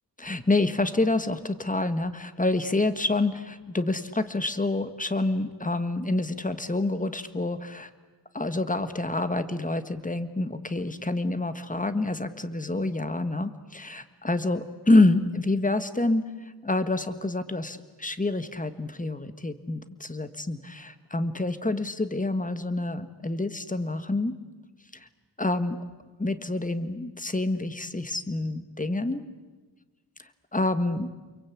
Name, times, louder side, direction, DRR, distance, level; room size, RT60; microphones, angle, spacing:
voice 1, 0.2-7.9 8.3-24.4 24.9-25.1 25.4-25.8 26.2-29.2 30.2-31.1, left 2 dB, 20° left, 11 dB, 1.5 m, -27 dB
29.5 x 23.0 x 8.6 m, 1.3 s
wide cardioid pair, 90°, 41 cm